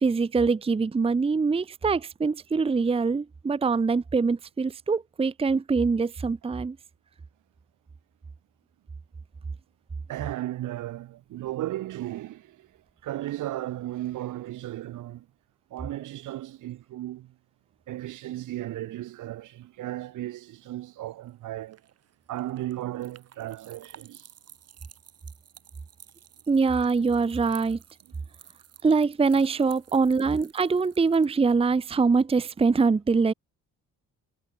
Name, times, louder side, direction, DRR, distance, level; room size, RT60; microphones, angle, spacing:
voice 1, 0.0-6.8 26.5-27.8 28.8-33.3, right 4 dB, 20° right, 0.7 m, -23 dB
voice 2, 10.1-12.7 13.0-15.3 15.7-17.3 17.9-21.8 22.3-24.3, right 14 dB, 80° right, 2.3 m, -35 dB
sound 1, 21.3-31.3, right 9 dB, 55° right, 2.9 m, -53 dB
cardioid pair, 90°, 30 cm